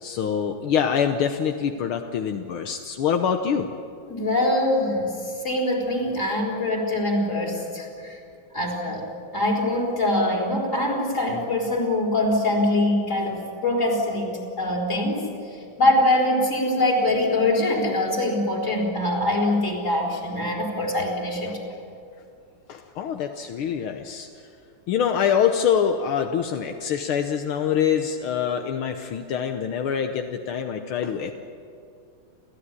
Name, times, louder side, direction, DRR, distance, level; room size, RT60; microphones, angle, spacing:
voice 1, 0.0-3.7 22.7-24.3 24.9-31.3, left 8 dB, 80° left, 5 dB, 1.8 m, -25 dB
voice 2, 4.1-8.2 8.5-9.1 9.3-21.6, left 1 dB, 35° left, 0 dB, 4.5 m, -23 dB
30.0 x 14.5 x 9.8 m, 2.5 s
omnidirectional pair, 2.3 m